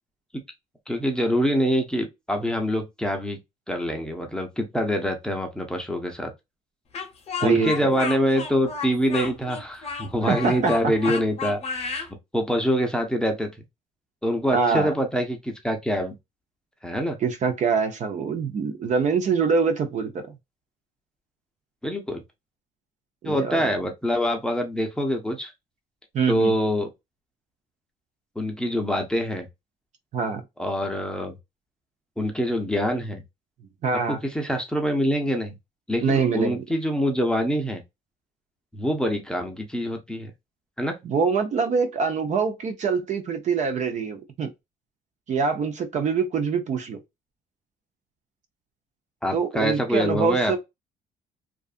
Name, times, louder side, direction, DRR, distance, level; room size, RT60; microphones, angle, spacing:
voice 1, 0.9-3.4 3.7-6.3 7.4-12.1 12.3-13.5 14.2-16.1 16.8-17.2 21.8-22.2 23.2-25.5 26.3-26.9 28.4-29.5 30.6-31.4 32.2-33.2 34.1-35.6 35.9-37.8 38.7-40.3 40.8-41.0 49.2-50.6, equal, 5° left, 0.6 m, -25 dB
Speech, 6.9-12.1, left 5 dB, 40° left, 0.8 m, -32 dB
voice 2, 7.4-8.0 10.3-10.8 14.5-14.9 17.2-20.3 23.2-23.7 26.1-26.5 30.1-30.4 33.8-34.2 36.0-36.6 41.0-44.5 45.3-47.0 49.3-50.6, right 5 dB, 45° right, 0.5 m, -24 dB
2.5 x 2.3 x 2.4 m
cardioid pair, 110°, 17 cm